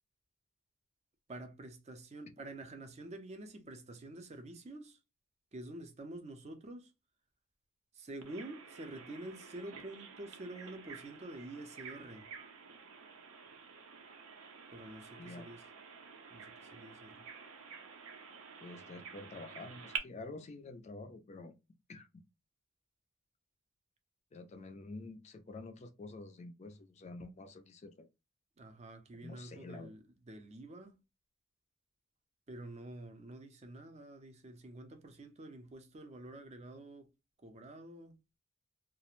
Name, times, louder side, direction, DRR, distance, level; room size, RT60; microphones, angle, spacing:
voice 1, 1.3-5.0 5.5-6.9 7.9-12.3 14.7-15.6 16.3-17.3 28.6-31.0 32.5-37.1 37.4-38.2, right 1 dB, 30° right, 0.5 m, -48 dB
Bird vocalization bird call bird song, 8.2-20.0, right 6 dB, 80° right, 0.6 m, -49 dB
voice 2, 15.2-15.5 18.6-21.5 21.9-22.2 24.3-28.1 29.2-29.9, left 2 dB, 35° left, 0.4 m, -48 dB
2.4 x 2.0 x 3.0 m
head